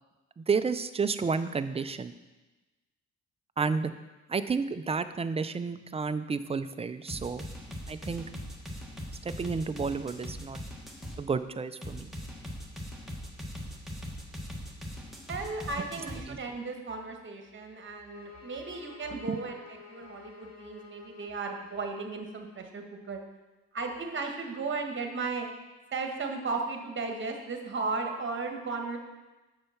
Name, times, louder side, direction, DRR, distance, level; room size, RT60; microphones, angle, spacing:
voice 1, 0.4-2.1 3.6-3.9 4.3-7.4 7.9-8.3 9.2-10.6 11.2-12.1 16.3-16.4 19.3-19.4, right 5 dB, 20° right, 11 dB, 0.4 m, -31 dB
sound 1, 7.1-11.2 11.8-16.2, equal, ahead, 1.4 m, -40 dB
voice 2, 15.3-19.5 19.9-23.2 23.7-25.5 25.9-29.0, right 3 dB, 40° right, 4 dB, 1.3 m, -35 dB
sound 2, 17.7-22.6, left 5 dB, 60° left, 2.1 m, -51 dB
6.8 x 5.7 x 5.7 m, 1.1 s
cardioid pair, 90°, 30 cm